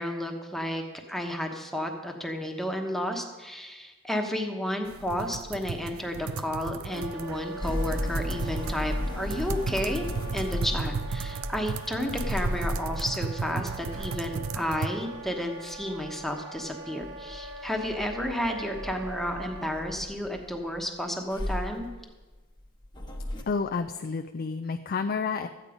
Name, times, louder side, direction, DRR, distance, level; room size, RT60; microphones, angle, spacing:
voice 1, 0.0-10.1 10.3-21.9, equal, ahead, 3 dB, 1.1 m, -32 dB
sound 1, 4.9-14.9, right 5 dB, 75° right, 0.4 m, -36 dB
Wind instrument woodwind instrument, 6.9-19.8, right 2 dB, 50° right, 1.8 m, -43 dB
sound 2, 7.6-16.7 17.0-20.8 21.3-23.4, left 1 dB, 20° left, 1.0 m, -35 dB
voice 2, 23.5-25.5, left 5 dB, 45° left, 7 dB, 0.4 m, -30 dB
13.0 x 8.7 x 5.0 m, 1.2 s
head